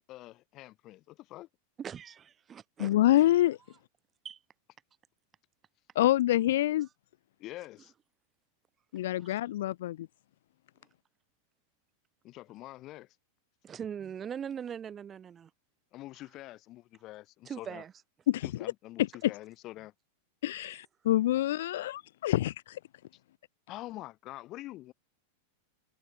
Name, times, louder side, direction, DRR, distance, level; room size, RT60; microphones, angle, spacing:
voice 1, 0.1-1.5 7.4-7.9 12.2-13.2 15.9-17.8 18.4-19.9 23.7-24.9, left 17 dB, 35° left, 3.7 m, -45 dB
voice 2, 1.8-2.9 4.2-4.4 9.2-9.3 13.6-15.5 17.4-17.9, right 8 dB, 25° right, 1.5 m, -40 dB
voice 3, 2.8-3.6 6.0-6.9 8.9-10.1 18.3-18.5 19.2-19.3 20.4-22.8, left 14 dB, 55° left, 0.5 m, -26 dB
figure-of-eight pair, 90°, 0 cm